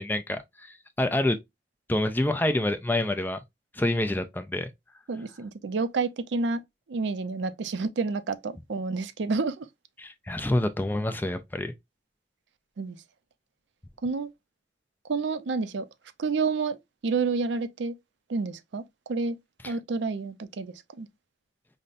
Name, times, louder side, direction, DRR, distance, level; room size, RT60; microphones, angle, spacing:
voice 1, 0.0-1.4 1.9-3.4 3.7-4.7 10.0-11.7 19.6-19.7, left 1 dB, 10° left, 0.3 m, -27 dB
voice 2, 5.1-6.6 6.9-9.7 12.8-13.0 14.0-14.3 15.1-15.9 16.2-16.8 17.0-17.9 18.3-18.8 19.1-19.4 19.7-21.1, right 4 dB, 85° right, 0.4 m, -29 dB
5.3 x 2.1 x 2.4 m
head